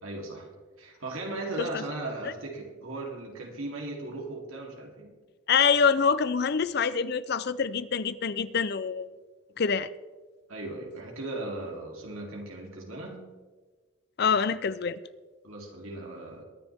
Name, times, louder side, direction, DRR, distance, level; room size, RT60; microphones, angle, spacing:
voice 1, 0.0-0.5 0.8-5.1 10.5-13.2 15.4-16.4, right 2 dB, 85° right, 3.3 m, -37 dB
voice 2, 5.5-9.1 9.6-9.9 14.2-15.0, left 6 dB, 50° left, 0.5 m, -25 dB
22.5 x 10.0 x 3.6 m
head